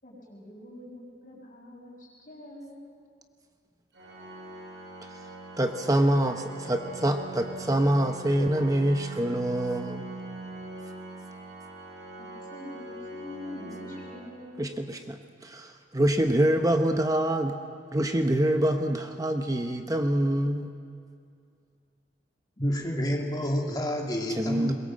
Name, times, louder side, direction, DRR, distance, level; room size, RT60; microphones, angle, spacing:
voice 1, 0.0-2.8 12.2-14.7, left 1 dB, 45° left, -2 dB, 6.1 m, -44 dB
Organ, 3.9-14.9, right 2 dB, 85° right, 6.2 m, -42 dB
voice 2, 5.6-10.1 14.6-17.6 17.9-20.7 24.3-24.7, right 1 dB, 20° right, 5 dB, 0.9 m, -25 dB
voice 3, 22.6-24.7, equal, 20° left, 0 dB, 2.5 m, -29 dB
22.5 x 21.5 x 7.5 m, 2.3 s
head